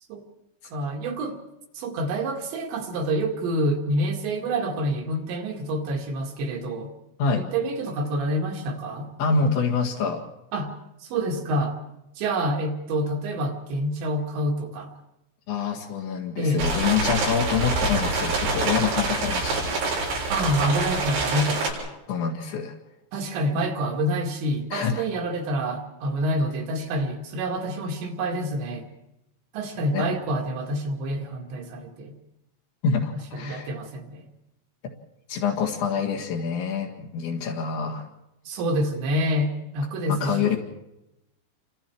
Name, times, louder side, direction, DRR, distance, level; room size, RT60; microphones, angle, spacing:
voice 1, 0.7-1.4 1.7-6.9 7.4-9.1 10.5-10.7 11.0-11.8 12.2-14.9 16.4-16.6 20.3-21.6 23.1-28.9 29.5-32.2 33.3-34.3 38.5-40.6, right 1 dB, 65° right, 2 dB, 4.2 m, -27 dB
voice 2, 9.2-10.2 15.5-19.8 22.1-22.8 23.5-23.7 24.7-25.0 29.9-30.2 32.8-33.7 35.3-38.1 40.1-40.6, left 6 dB, 70° left, -4 dB, 4.1 m, -26 dB
sound 1, 16.6-21.7, right 3 dB, 90° right, 9.5 m, -26 dB
29.5 x 26.0 x 4.6 m, 0.92 s
omnidirectional pair, 5.7 m